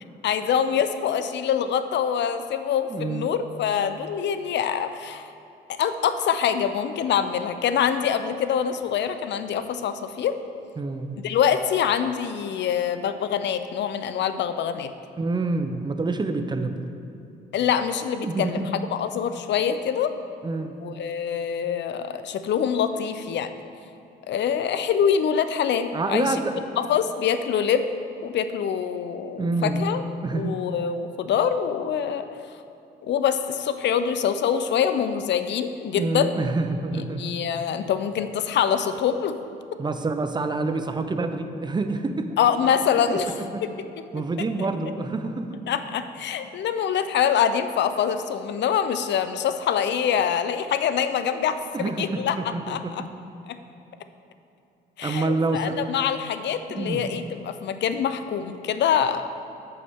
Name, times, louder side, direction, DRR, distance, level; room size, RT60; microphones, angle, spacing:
voice 1, 0.2-5.3 5.7-10.4 11.2-14.9 17.5-18.6 18.9-20.1 20.8-23.5 24.3-26.4 26.8-27.9 28.2-30.0 30.3-32.3 33.0-36.3 36.9-39.3 42.4-43.3 43.6-43.7 45.7-52.4 52.7-53.0 53.5-53.6 55.0-59.2, left 8 dB, 65° left, 10 dB, 0.5 m, -25 dB
voice 2, 2.9-3.3 10.8-11.1 15.2-16.8 18.2-18.7 20.4-20.7 25.9-26.6 29.4-29.8 30.2-30.6 35.9-37.3 39.8-42.4 43.1-43.6 44.1-45.6 51.7-53.1 55.0-55.8 56.8-57.0, right 3 dB, 20° right, 8 dB, 0.6 m, -27 dB
8.6 x 6.9 x 3.6 m, 2.9 s
cardioid pair, 90°, 20 cm